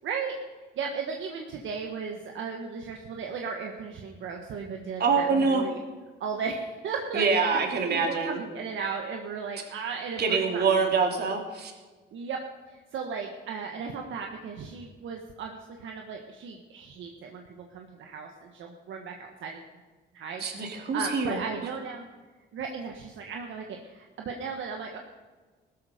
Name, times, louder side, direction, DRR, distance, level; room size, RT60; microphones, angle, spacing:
voice 1, 0.0-0.3 0.8-5.8 6.2-7.2 7.9-10.6 12.1-12.4 12.7-19.6 20.1-22.0 22.5-25.0, right 5 dB, 75° right, 2 dB, 1.5 m, -36 dB
voice 2, 5.0-5.7 7.1-8.4 10.2-11.7 20.4-21.4, right 5 dB, 55° right, 2 dB, 3.0 m, -25 dB
17.0 x 13.0 x 5.2 m, 1.3 s
cardioid pair, 90°, 20 cm